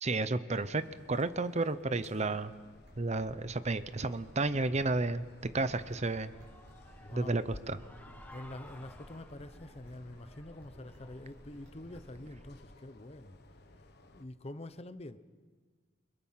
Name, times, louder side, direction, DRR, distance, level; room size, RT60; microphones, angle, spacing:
voice 1, 0.0-0.8 1.1-2.5 3.0-5.2 5.5-6.3 7.1-7.8, right 3 dB, 35° right, 0.8 m, -32 dB
sound 1, 0.5-14.2, left 2 dB, 60° left, 1.4 m, -59 dB
sound 2, 2.7-12.7, equal, 80° right, 6.1 m, -56 dB
Human voice / Cheering, 6.1-12.6, left 1 dB, 10° left, 1.5 m, -58 dB
voice 2, 7.0-7.6 8.3-13.4 14.1-15.2, left 1 dB, 35° left, 0.9 m, -46 dB
29.0 x 23.5 x 5.8 m
head